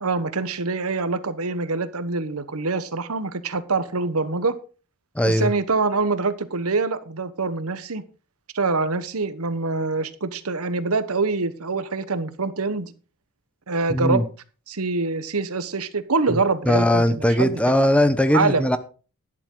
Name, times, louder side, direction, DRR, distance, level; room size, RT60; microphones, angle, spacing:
voice 1, 0.0-4.6 5.2-8.0 8.5-12.9 13.7-14.2 14.7-17.9 18.3-18.7, right 3 dB, 80° right, 1.1 m, -25 dB
voice 2, 5.1-5.5 13.9-14.2 16.3-16.4 16.7-18.8, left 1 dB, 5° left, 0.9 m, -19 dB
12.0 x 11.0 x 3.8 m
head